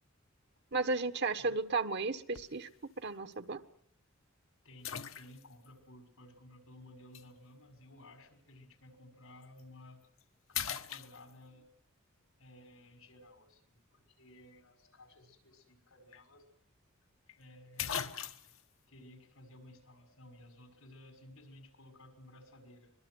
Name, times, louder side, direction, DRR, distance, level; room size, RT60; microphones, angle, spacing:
voice 1, 0.7-2.7 3.0-3.6, right 3 dB, 55° right, 8 dB, 1.4 m, -34 dB
sound 1, 2.4-2.7 3.3-3.4 4.8-5.7 7.1-7.3 9.4-9.6 10.0-10.2 10.5-11.6 15.7-15.8 16.1-16.2 17.3-17.4 17.8-18.6, left 8 dB, 70° left, 1.3 m, -39 dB
voice 2, 4.6-10.0 10.5-11.6 12.4-16.4 17.4-18.1 18.9-22.9, left 1 dB, 90° left, 6 dB, 5.9 m, -56 dB
24.5 x 23.0 x 6.4 m, 0.64 s
head